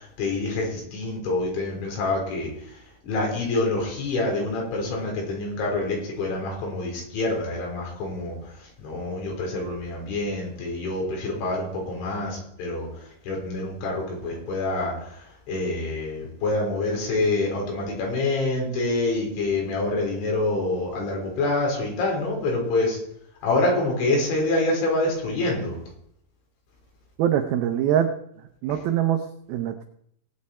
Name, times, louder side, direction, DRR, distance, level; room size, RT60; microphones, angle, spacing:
voice 1, 0.0-2.5 3.0-8.3 8.8-12.9 13.3-23.0 23.4-25.8, left 2 dB, 80° left, -1 dB, 6.1 m, -26 dB
voice 2, 27.2-28.1 28.6-29.8, right 10 dB, 90° right, 6 dB, 2.1 m, -23 dB
19.0 x 9.2 x 4.2 m, 0.71 s
omnidirectional pair, 5.3 m